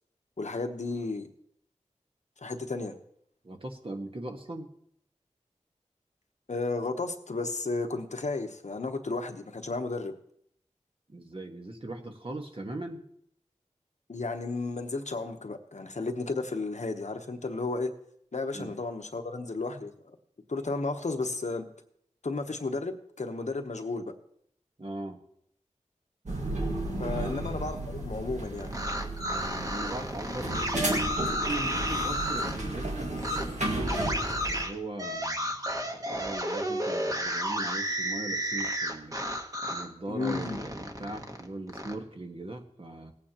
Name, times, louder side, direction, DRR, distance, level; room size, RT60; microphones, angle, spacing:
voice 1, 0.4-1.3 2.4-2.9 6.5-10.1 14.1-17.9 18.3-20.2 20.5-21.7 22.2-24.1 27.0-28.7 40.1-40.6, left 3 dB, 75° left, 6 dB, 1.0 m, -33 dB
voice 2, 3.4-4.7 11.1-13.0 18.5-18.8 24.8-25.2 27.1-27.4 29.3-30.8 31.4-33.7 34.4-39.2 39.7-43.1, right 2 dB, 45° right, 3 dB, 1.4 m, -40 dB
sound 1, 26.3-34.6, right 1 dB, 70° right, 1.8 m, -33 dB
sound 2, 28.6-32.6 33.2-33.4 33.9-39.9 40.2-41.9, equal, 30° right, 1.3 m, -32 dB
18.0 x 8.7 x 2.9 m, 0.68 s
wide cardioid pair, 50°, 12 cm